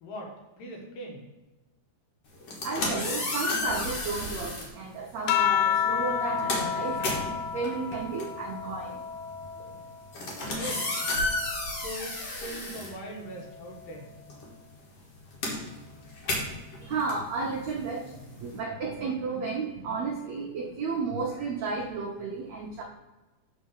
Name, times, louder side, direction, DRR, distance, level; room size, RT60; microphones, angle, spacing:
voice 1, 0.0-1.2 10.4-11.0 11.7-14.1, equal, 65° left, 0 dB, 3.0 m, -41 dB
sound 1, 2.4-4.7 5.6-5.8 6.1-13.6 13.9-18.6, left 2 dB, 50° left, 2.3 m, -33 dB
voice 2, 2.6-9.4 16.8-22.8, right 4 dB, 75° right, -1 dB, 1.6 m, -33 dB
sound 2, 5.3-10.1 10.5-12.3 13.5-14.0, left 8 dB, 85° left, 1.9 m, -31 dB
8.5 x 4.1 x 6.5 m, 1.1 s
omnidirectional pair, 4.4 m